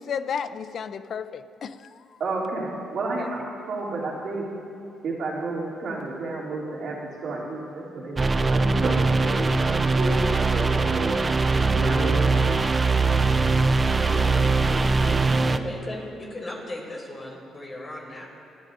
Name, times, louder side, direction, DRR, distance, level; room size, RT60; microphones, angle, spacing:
voice 1, 0.0-2.2, left 7 dB, 60° left, 0.5 m, -33 dB
voice 2, 2.2-4.5 5.0-11.3 11.7-12.4 14.0-14.4 14.7-15.6, right 2 dB, 65° right, 2.9 m, -32 dB
sound 1, 8.2-15.6, right 3 dB, 30° right, 0.5 m, -21 dB
voice 3, 15.4-18.3, left 1 dB, 30° left, 2.9 m, -36 dB
27.0 x 10.0 x 2.6 m
cardioid pair, 90°, 0 cm